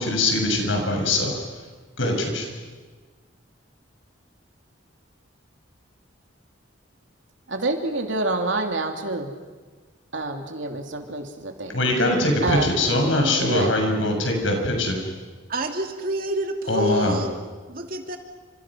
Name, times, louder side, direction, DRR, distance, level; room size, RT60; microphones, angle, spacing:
voice 1, 0.0-1.4 2.0-2.5 11.7-15.0 16.7-17.2, left 1 dB, 75° left, 2 dB, 7.0 m, -22 dB
voice 2, 7.5-9.3 10.1-11.7 12.4-12.7 13.4-13.7, right 2 dB, 75° right, 4 dB, 2.9 m, -27 dB
voice 3, 15.5-18.2, right 1 dB, 50° right, 4 dB, 2.6 m, -28 dB
30.0 x 27.5 x 6.3 m, 1.4 s
head